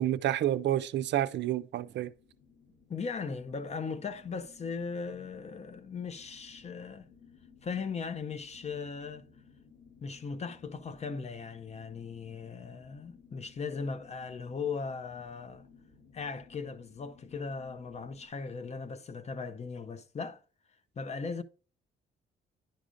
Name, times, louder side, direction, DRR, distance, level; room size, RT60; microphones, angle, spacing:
voice 1, 0.0-2.1, right 12 dB, 65° right, 0.4 m, -29 dB
sound 1, 1.6-18.3, left 6 dB, 55° left, 3.2 m, -59 dB
voice 2, 2.9-7.1 7.6-9.3 10.0-15.7 16.1-20.4 21.0-21.4, left 5 dB, 35° left, 0.5 m, -38 dB
10.5 x 4.9 x 2.5 m
cardioid pair, 90°, 20 cm